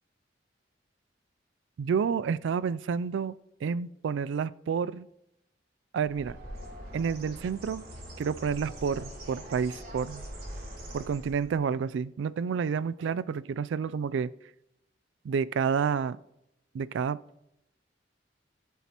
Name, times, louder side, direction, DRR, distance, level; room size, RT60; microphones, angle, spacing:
voice 1, 1.8-3.3 3.6-5.1 5.9-6.4 6.9-7.8 8.2-10.2 10.9-14.3 15.2-16.2 16.7-17.2, right 6 dB, 80° right, 18 dB, 0.3 m, -29 dB
Bird, 6.0-11.6, equal, 55° right, 3.0 m, -43 dB
18.0 x 7.1 x 2.9 m, 0.85 s
head